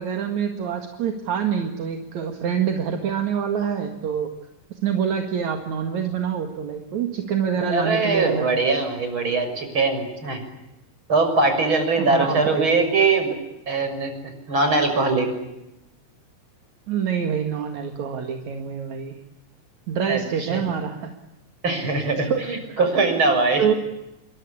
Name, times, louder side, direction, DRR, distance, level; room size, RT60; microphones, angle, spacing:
voice 1, 0.0-4.3 4.8-8.4 12.0-12.7 16.9-19.2 19.9-21.1 21.8-21.9 22.3-22.8 23.6-23.7, right 7 dB, 70° right, 5 dB, 3.3 m, -26 dB
voice 2, 7.6-10.4 11.1-13.4 13.7-14.1 14.5-15.3 20.1-20.6 21.6-23.8, right 3 dB, 40° right, 6 dB, 7.2 m, -21 dB
28.0 x 24.0 x 8.6 m, 0.92 s
omnidirectional pair, 3.4 m